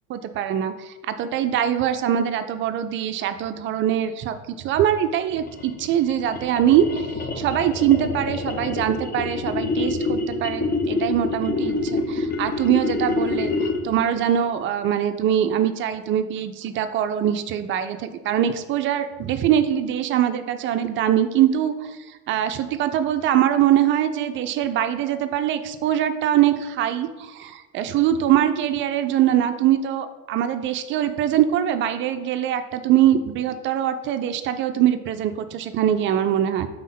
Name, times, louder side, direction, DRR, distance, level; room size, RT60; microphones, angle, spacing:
voice 1, 0.1-7.1 7.4-21.7 22.3-36.7, right 10 dB, 30° right, 9 dB, 0.4 m, -22 dB
sound 1, 5.3-14.0, left 3 dB, 20° left, 0.7 m, -27 dB
5.4 x 3.6 x 5.5 m, 1.1 s
figure-of-eight pair, 75°, 44 cm